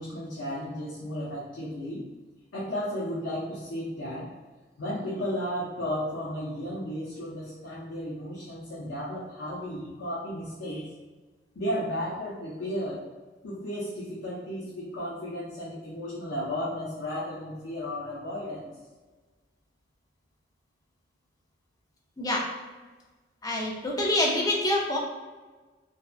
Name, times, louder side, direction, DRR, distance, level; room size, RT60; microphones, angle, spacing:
voice 1, 0.0-2.0 2.5-4.3 4.8-10.9 11.5-13.0 13.4-18.7, equal, 85° left, -5 dB, 0.5 m, -34 dB
voice 2, 23.4-25.0, left 1 dB, 20° left, -2 dB, 0.4 m, -26 dB
2.7 x 2.1 x 2.3 m, 1.3 s
head